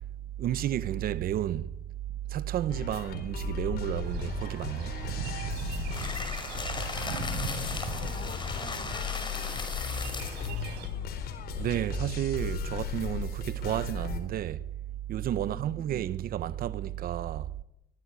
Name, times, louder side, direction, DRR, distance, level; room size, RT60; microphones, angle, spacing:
voice 1, 0.4-1.7 2.3-5.0 11.6-14.6 15.1-17.5, right 11 dB, 60° right, 1.0 m, -31 dB
sound 1, 2.7-14.2, left 8 dB, 70° left, 4.0 m, -36 dB
sound 2, 4.0-10.9, right 7 dB, 85° right, 4.4 m, -41 dB
voice 2, 5.9-6.4 7.0-11.2 15.4-15.9, left 5 dB, 50° left, 4.5 m, -49 dB
sound 3, 5.9-10.5, left 4 dB, 25° left, 5.4 m, -37 dB
22.0 x 21.0 x 9.4 m
cardioid pair, 110°, 17 cm